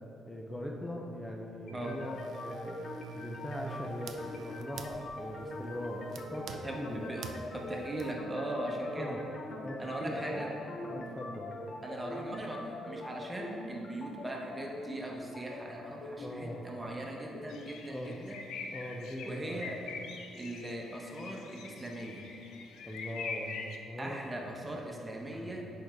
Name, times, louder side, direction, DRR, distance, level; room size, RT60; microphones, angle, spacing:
voice 1, 0.3-2.8 3.1-7.1 8.9-9.2 9.6-10.5 10.9-11.6 16.2-16.6 17.9-18.2 18.7-19.6 22.9-23.5 23.8-24.3 25.3-25.6, left 1 dB, 15° left, -1 dB, 0.6 m, -41 dB
sound 1, 1.7-17.7, left 2 dB, 55° left, 0.9 m, -43 dB
sound 2, 1.8-8.1, right 6 dB, 70° right, 0.4 m, -48 dB
voice 2, 6.6-7.3 7.5-9.2 9.8-10.5 11.8-18.4 19.2-19.8 20.4-22.2 24.0-25.6, right 1 dB, 20° right, -1 dB, 1.1 m, -39 dB
sound 3, 17.5-23.8, left 4 dB, 85° left, 0.6 m, -44 dB
7.1 x 4.8 x 4.6 m, 2.8 s
cardioid pair, 90°, 0 cm